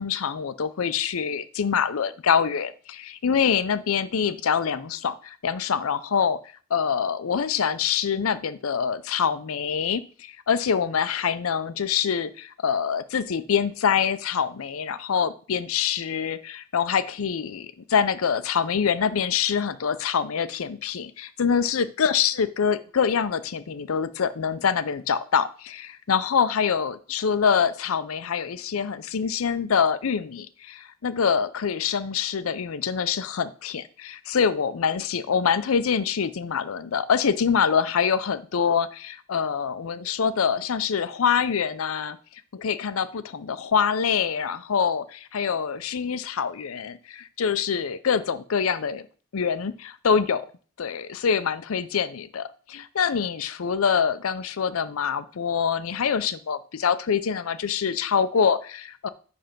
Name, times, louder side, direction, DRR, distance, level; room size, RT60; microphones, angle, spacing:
voice 1, 0.0-6.4 6.7-42.2 42.5-49.0 49.3-50.4 50.8-59.1, left 7 dB, 80° left, 13 dB, 0.5 m, -25 dB
10.0 x 3.4 x 5.8 m, 0.40 s
head